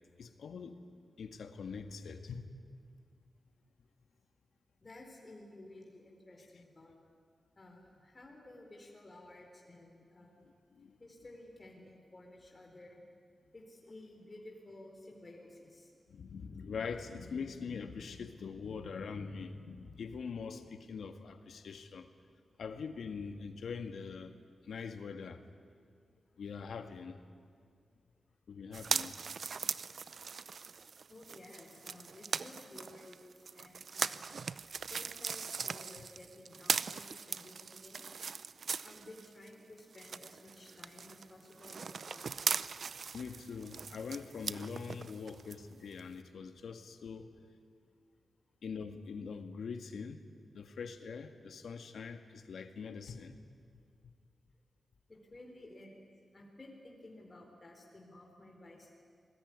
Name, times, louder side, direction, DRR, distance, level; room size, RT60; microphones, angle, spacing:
voice 1, 0.2-0.8 1.2-2.5 10.4-11.0 16.1-22.1 22.6-24.4 24.6-25.4 26.4-27.2 28.5-29.2 43.1-47.4 48.6-50.2 50.5-53.3, left 5 dB, 85° left, 7 dB, 1.8 m, -43 dB
voice 2, 4.8-6.9 7.6-10.4 11.0-13.0 13.5-15.9 31.1-34.6 34.9-38.3 38.8-42.5 55.1-55.9 56.3-58.9, left 1 dB, 25° left, 0 dB, 4.1 m, -54 dB
sound 1, 28.7-39.5 39.8-45.5 46.0-46.1, right 5 dB, 55° right, 0.6 m, -39 dB
28.0 x 21.0 x 9.7 m, 2.1 s
wide cardioid pair, 155°, 0 cm